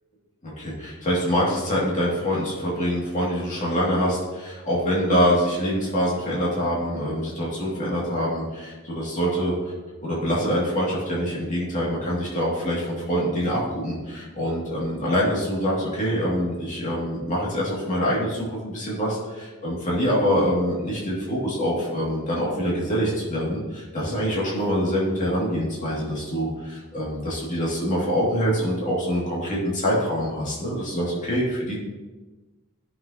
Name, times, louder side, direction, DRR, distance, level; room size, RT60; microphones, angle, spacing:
voice 1, 0.4-9.5 10.0-31.8, equal, 35° left, -6 dB, 2.5 m, -25 dB
13.5 x 6.2 x 2.9 m, 1.2 s
head